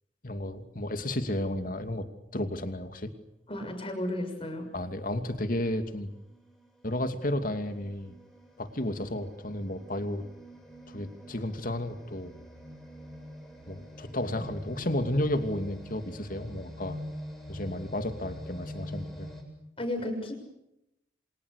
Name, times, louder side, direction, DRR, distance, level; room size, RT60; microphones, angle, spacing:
voice 1, 0.2-3.1 4.7-6.1 6.8-8.2 8.6-10.2 10.9-12.3 13.7-17.0 17.5-19.3, left 1 dB, 50° left, 8 dB, 2.7 m, -32 dB
voice 2, 3.5-4.7 19.8-20.3, left 1 dB, 30° left, 5 dB, 6.6 m, -33 dB
sound 1, 4.8-5.1 5.7-19.4, left 1 dB, ahead, 7.9 m, -45 dB
29.0 x 27.0 x 6.7 m, 0.85 s
head